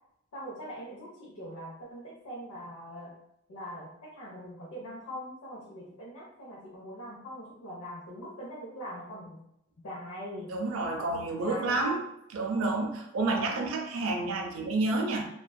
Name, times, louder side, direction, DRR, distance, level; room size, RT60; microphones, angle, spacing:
voice 1, 0.3-3.1 3.5-9.4 9.8-10.5 11.0-12.0, equal, 75° left, -5 dB, 0.6 m, -42 dB
voice 2, 10.5-12.0 12.3-15.3, right 2 dB, 65° right, 3 dB, 0.4 m, -29 dB
2.5 x 2.2 x 2.2 m, 0.77 s
head